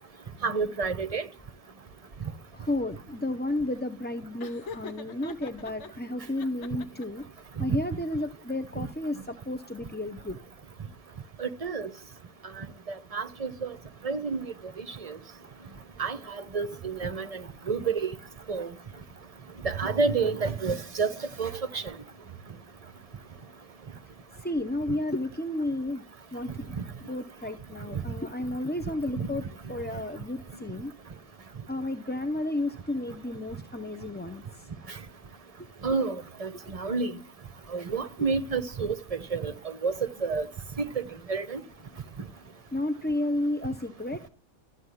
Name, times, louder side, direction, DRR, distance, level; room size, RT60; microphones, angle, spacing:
voice 1, 0.4-1.2 7.7-7.8 8.8-8.9 11.4-11.9 13.1-13.7 14.0-14.4 14.8-15.2 16.0-16.2 16.5-17.4 17.7-18.1 18.5-18.7 19.6-21.1 21.4-21.8 27.9-28.0 29.2-29.3 35.8-36.2 36.4-37.1 37.7-38.9 39.3-39.9 40.2-40.5 40.8-41.0 41.3-41.6, right 4 dB, 30° right, 0.9 m, -29 dB
voice 2, 2.5-7.2 7.6-10.4 24.4-26.0 26.3-26.8 27.1-29.4 29.7-30.9 31.7-34.4 42.7-44.3, left 1 dB, 10° left, 0.6 m, -32 dB
Laughter, 4.4-5.9 6.4-7.3, left 5 dB, 65° left, 1.3 m, -43 dB
13.5 x 8.3 x 9.8 m
omnidirectional pair, 1.3 m